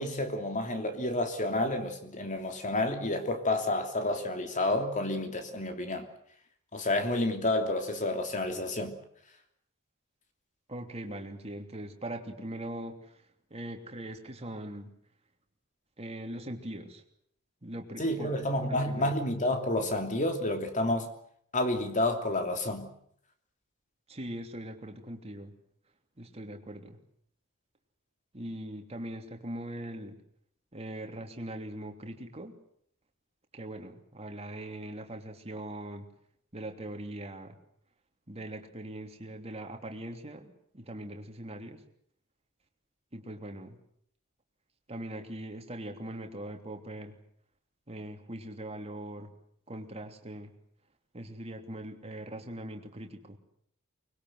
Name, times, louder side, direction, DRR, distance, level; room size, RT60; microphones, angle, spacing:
voice 1, 0.0-6.1 6.7-9.0 18.0-21.1 21.5-22.9, left 1 dB, 35° left, 6 dB, 3.1 m, -30 dB
voice 2, 10.7-13.2 13.5-14.9 16.0-17.0 17.6-19.1 24.1-25.5 26.2-27.0 28.3-30.2 30.7-32.6 33.5-36.1 36.5-37.6 38.3-41.8 43.1-43.8 44.9-47.2 47.9-49.3 49.7-50.5 51.1-53.4, right 1 dB, 30° right, 4 dB, 3.1 m, -41 dB
24.5 x 21.5 x 8.0 m, 0.68 s
head